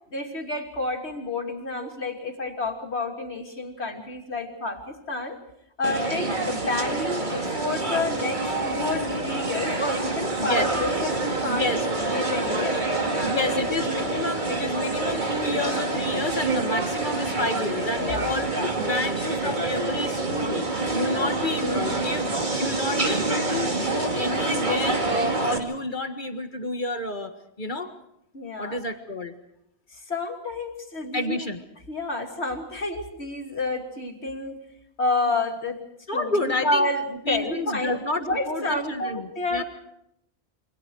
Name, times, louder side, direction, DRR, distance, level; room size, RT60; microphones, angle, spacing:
voice 1, 0.1-5.4 5.8-11.7 12.0-13.8 18.0-18.4 21.6-22.1 28.3-28.8 29.9-31.4 31.9-34.6 35.0-35.8 36.1-39.6, left 2 dB, 85° left, 2 dB, 3.2 m, -30 dB
sound 1, 5.8-25.6, right 2 dB, 45° right, 2.4 m, -27 dB
voice 2, 11.5-11.9 13.2-22.3 22.5-27.3 27.6-27.9 28.6-29.3 31.1-31.6 36.1-36.9 37.3-39.6, left 2 dB, 50° left, 6 dB, 1.8 m, -29 dB
28.5 x 24.5 x 4.7 m, 0.77 s
omnidirectional pair, 1.1 m